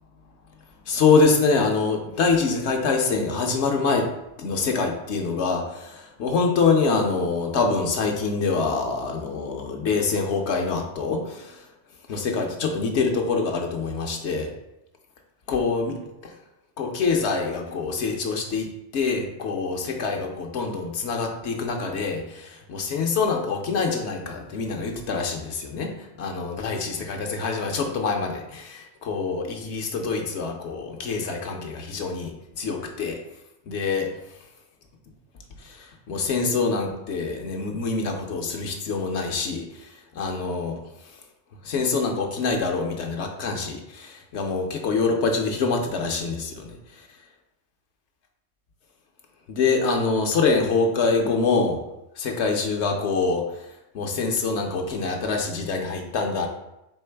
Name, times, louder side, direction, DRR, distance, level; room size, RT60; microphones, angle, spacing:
voice 1, 0.9-4.1 4.4-11.7 12.1-14.5 15.5-16.0 16.2-16.3 16.8-18.7 18.9-33.2 33.7-34.1 35.6-41.2 41.6-47.1 49.5-51.8 52.1-56.5, left 4 dB, 70° left, 2 dB, 0.9 m, -25 dB
4.6 x 3.3 x 3.3 m, 0.89 s
omnidirectional pair, 1.3 m